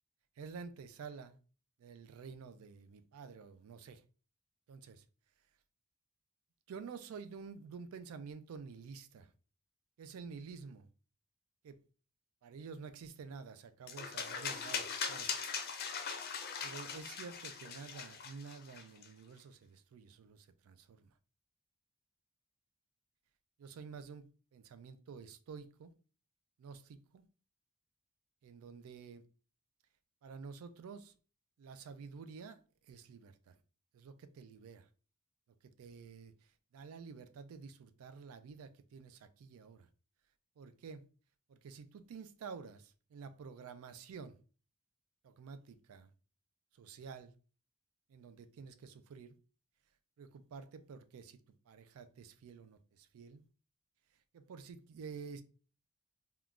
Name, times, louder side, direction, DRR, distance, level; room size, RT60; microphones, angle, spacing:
voice 1, 0.4-1.4 1.8-4.0 4.7-5.0 6.7-9.3 10.0-10.8 11.6-11.8 12.4-15.3 16.6-21.1 23.6-25.9 26.6-27.2 28.4-29.2 30.2-31.1 31.6-33.6 33.9-34.9 35.6-39.9 40.6-41.0 41.5-44.4 45.2-46.1 46.8-47.3 48.1-49.4 50.2-51.4 51.7-53.4 54.3-55.4, right 5 dB, 80° right, 0.3 m, -50 dB
sound 1, 13.9-19.1, left 6 dB, 45° left, 0.5 m, -40 dB
3.6 x 2.2 x 2.3 m
head